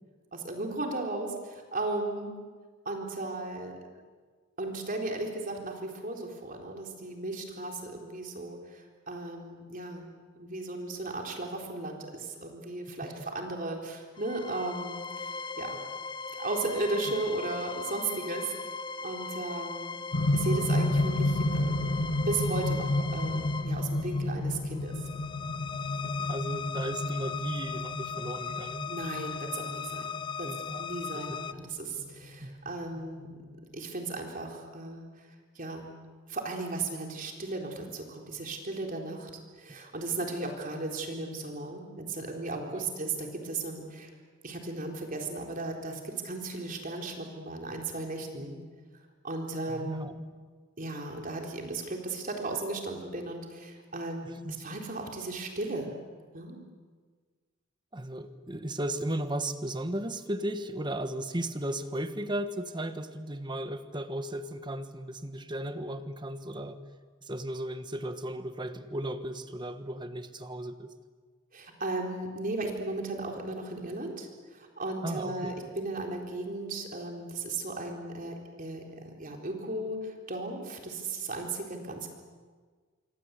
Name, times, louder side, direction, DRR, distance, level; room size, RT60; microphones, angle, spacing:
voice 1, 0.3-2.3 2.9-3.7 4.6-10.1 10.4-15.3 15.6-15.8 16.4-18.5 19.0-20.0 20.3-24.9 28.9-30.1 30.4-33.3 33.7-35.1 35.6-35.9 36.3-39.3 39.6-44.1 44.4-48.6 49.2-50.2 50.8-56.0 56.3-56.6 71.5-82.1, right 2 dB, 40° right, 2 dB, 3.9 m, -36 dB
sound 1, 14.2-31.5, left 5 dB, 25° left, 0.7 m, -39 dB
sound 2, 20.1-32.3 33.2-33.3, left 1 dB, 65° left, 1.5 m, -31 dB
voice 2, 26.0-28.9 30.4-31.4 32.4-32.6 39.7-39.8 42.7-42.8 49.7-50.2 54.2-54.5 57.9-66.8 67.2-70.9 75.0-75.5, right 1 dB, 20° right, 9 dB, 1.4 m, -35 dB
26.0 x 25.0 x 8.3 m, 1.5 s
head